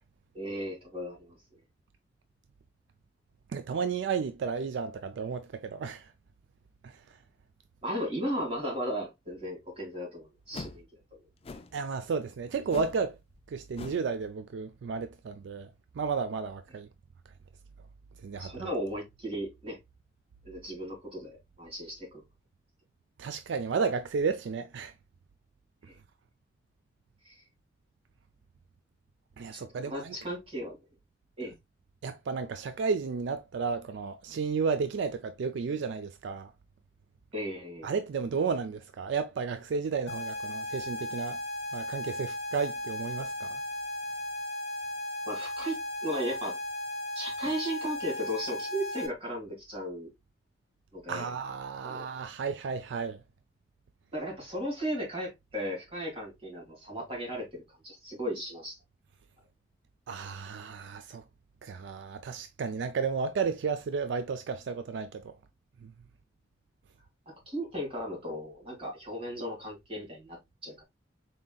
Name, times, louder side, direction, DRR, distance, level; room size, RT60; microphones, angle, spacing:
voice 1, 0.3-1.4 7.8-10.9 11.5-11.6 18.4-19.8 20.4-22.2 25.9-26.0 27.2-27.4 29.5-30.8 31.4-31.5 37.3-37.9 45.3-46.6 47.1-50.1 50.9-51.3 51.8-52.0 54.1-58.8 67.3-70.4 70.6-70.8, equal, 30° right, 2.3 m, -36 dB
voice 2, 3.5-6.1 6.8-7.2 11.7-13.2 13.5-16.9 18.2-18.7 23.2-24.9 29.4-30.2 32.0-36.5 37.8-41.4 41.7-43.6 51.1-53.2 60.1-61.2 61.6-65.3 65.8-65.9, right 5 dB, 70° right, 0.3 m, -33 dB
sound 1, 10.5-10.8 11.4-11.8 12.7-13.0 13.3-13.5 13.8-14.1, left 3 dB, 30° left, 0.4 m, -43 dB
sound 2, 40.1-49.1, left 1 dB, 60° left, 1.0 m, -36 dB
4.0 x 3.8 x 2.3 m
head